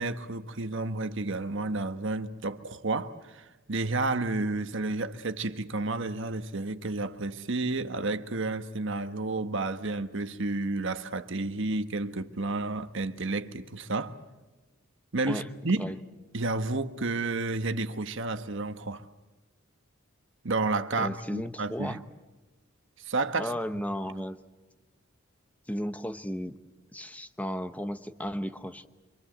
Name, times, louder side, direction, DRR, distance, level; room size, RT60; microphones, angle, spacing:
voice 1, 0.0-14.2 15.1-15.9 16.3-19.1 20.4-22.0 23.0-23.5, right 3 dB, 60° right, 1.3 m, -31 dB
voice 2, 21.0-22.0 23.4-24.4 25.7-26.6 26.9-28.9, equal, 5° left, 0.8 m, -34 dB
26.0 x 25.5 x 7.8 m
head